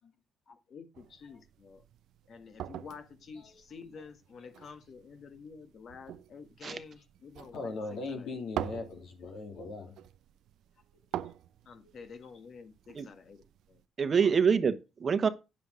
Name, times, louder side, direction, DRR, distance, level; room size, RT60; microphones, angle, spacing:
voice 1, 0.5-1.8 2.3-8.4 11.6-13.8 14.2-14.4, left 5 dB, 55° left, 1.5 m, -50 dB
sound 1, 0.9-13.8, right 11 dB, 80° right, 0.6 m, -45 dB
voice 2, 7.5-10.0 11.1-11.3 11.8-11.9, left 3 dB, 75° left, 2.9 m, -40 dB
voice 3, 14.0-15.3, right 6 dB, 45° right, 1.1 m, -26 dB
9.8 x 6.9 x 4.9 m
cardioid pair, 90°, 0 cm